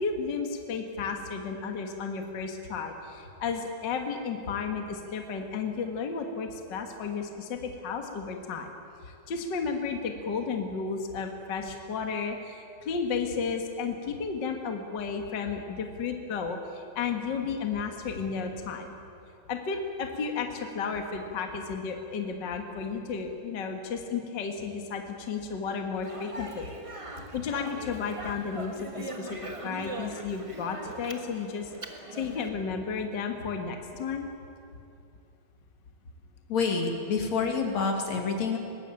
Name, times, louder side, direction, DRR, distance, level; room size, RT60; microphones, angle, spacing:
voice 1, 0.0-8.7 9.0-19.0 19.5-26.7 27.2-31.7 32.1-34.3, left 5 dB, 45° left, 4 dB, 1.9 m, -33 dB
Speech, 26.0-32.5, right 2 dB, 25° right, 0.7 m, -41 dB
voice 2, 36.5-38.6, left 4 dB, 65° left, 3 dB, 3.6 m, -27 dB
21.5 x 19.0 x 9.0 m, 2.7 s
omnidirectional pair, 3.4 m